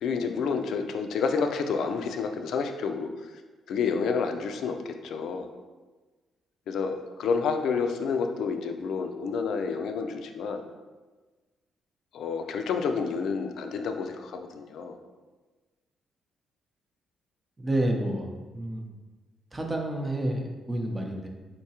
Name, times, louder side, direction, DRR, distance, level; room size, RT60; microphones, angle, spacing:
voice 1, 0.0-3.1 3.7-5.5 6.7-10.6 12.1-15.0, left 5 dB, 75° left, 6 dB, 0.4 m, -29 dB
voice 2, 17.6-18.9 19.5-21.3, right 1 dB, 20° right, 2 dB, 0.6 m, -29 dB
3.9 x 3.5 x 2.8 m, 1.3 s
cardioid pair, 90°, 0 cm